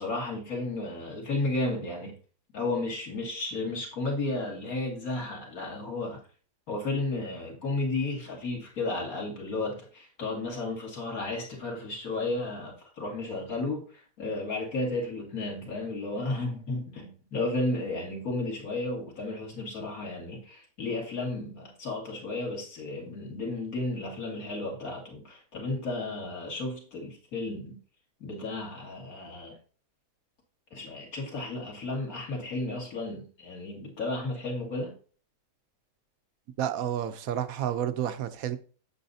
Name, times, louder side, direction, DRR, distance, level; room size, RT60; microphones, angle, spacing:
voice 1, 0.0-2.2 2.5-6.2 6.7-27.8 28.2-29.5 30.7-34.9, left 2 dB, 60° left, 2.7 m, -33 dB
voice 2, 36.6-38.6, right 10 dB, 65° right, 1.0 m, -30 dB
8.2 x 8.0 x 2.7 m
omnidirectional pair, 1.7 m